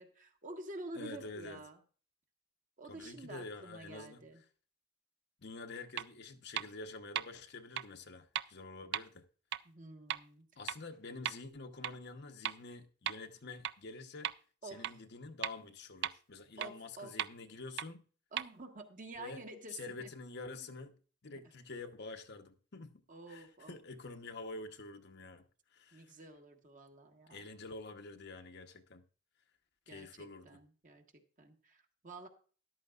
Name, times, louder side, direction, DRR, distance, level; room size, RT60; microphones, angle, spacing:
voice 1, 0.0-1.8 2.8-4.4 9.6-10.5 14.6-14.9 16.6-17.1 18.3-20.1 23.1-23.7 25.9-27.4 29.9-31.0 31.4-32.3, right 2 dB, 40° right, 1.5 m, -49 dB
voice 2, 0.9-1.6 2.9-4.2 5.4-9.2 10.6-14.3 14.7-18.0 19.2-19.4 19.7-21.0 21.2-23.0 23.3-25.4 25.7-26.1 27.3-29.0 29.9-30.5, left 3 dB, 55° left, 1.0 m, -47 dB
sound 1, 6.0-6.1 6.6-6.7 7.1-7.2 7.8-7.9 8.3-8.4 8.9-9.0 9.5-9.6 10.1-10.2 10.7-10.8 11.2-11.3 11.8-11.9 12.4-12.5 13.1-13.2 13.6-13.7 14.2-14.3 14.8-14.9 15.4-15.5 16.0-16.1 16.6-16.7 17.2-17.3 17.8-17.9 18.4-18.5, right 11 dB, 55° right, 0.4 m, -35 dB
13.5 x 11.5 x 2.4 m
head